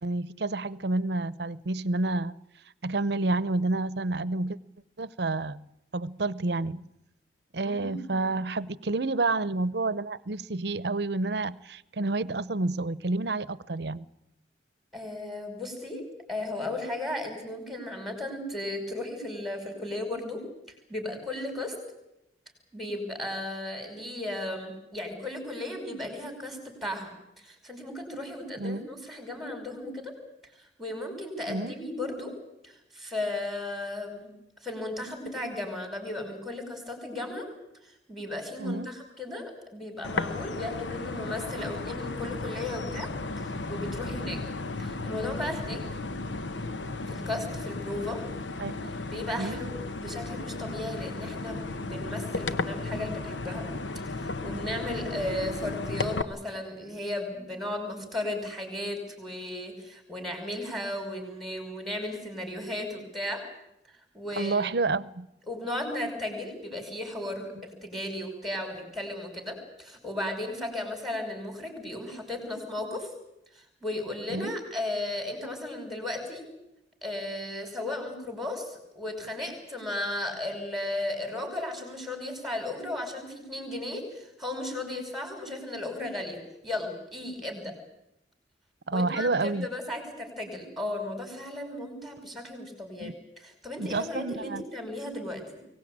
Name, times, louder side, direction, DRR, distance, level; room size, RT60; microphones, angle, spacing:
voice 1, 0.0-2.3 2.8-4.6 5.0-5.6 5.9-6.9 7.5-14.0 28.6-28.8 31.5-31.8 38.6-38.9 48.6-48.7 49.4-49.6 55.0-55.1 64.4-65.3 74.3-74.5 88.9-89.7 93.0-93.1 93.8-94.6, right 2 dB, 65° right, 18 dB, 0.8 m, -29 dB
voice 2, 7.6-8.3 14.9-16.0 16.3-20.4 20.9-21.7 22.7-30.1 30.6-32.3 32.6-34.3 34.6-37.5 37.8-43.1 43.4-44.4 44.8-45.8 47.1-48.2 49.1-53.7 54.0-63.4 64.1-64.7 65.5-73.1 73.5-76.4 77.0-87.7 88.9-95.6, left 1 dB, ahead, 4 dB, 5.5 m, -35 dB
sound 1, 40.0-56.2, left 3 dB, 90° left, 1.1 m, -34 dB
23.0 x 18.5 x 8.8 m, 0.84 s
head